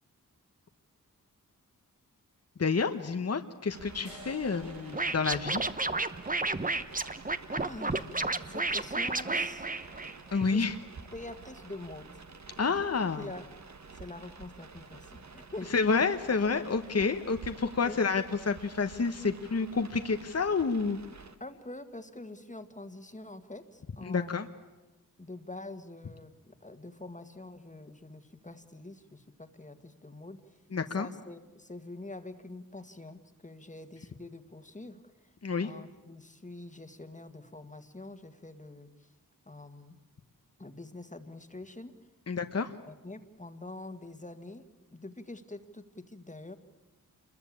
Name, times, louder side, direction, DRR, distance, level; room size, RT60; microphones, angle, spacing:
voice 1, 2.6-5.6 10.3-10.8 12.6-13.3 15.7-21.0 24.0-24.5 30.7-31.1 35.4-35.7 42.3-42.7, left 4 dB, 45° left, 8 dB, 1.1 m, -29 dB
sound 1, 3.7-21.4, right 4 dB, 50° right, 1.4 m, -50 dB
sound 2, 4.1-11.0, equal, 90° right, 7.0 m, -56 dB
Scratching (performance technique), 4.9-10.4, right 3 dB, 25° right, 1.0 m, -31 dB
voice 2, 7.5-9.7 10.4-10.6 11.1-12.1 12.7-12.8 13.2-13.4 13.9-16.0 16.6-16.7 17.8-18.0 21.4-24.5 25.2-30.6 30.9-35.3 35.6-39.1 39.5-40.0 40.6-42.0 42.9-44.6 44.9-46.6, left 2 dB, 20° left, 8 dB, 1.8 m, -45 dB
27.5 x 21.5 x 8.7 m, 1.1 s
wide cardioid pair, 95°, 34 cm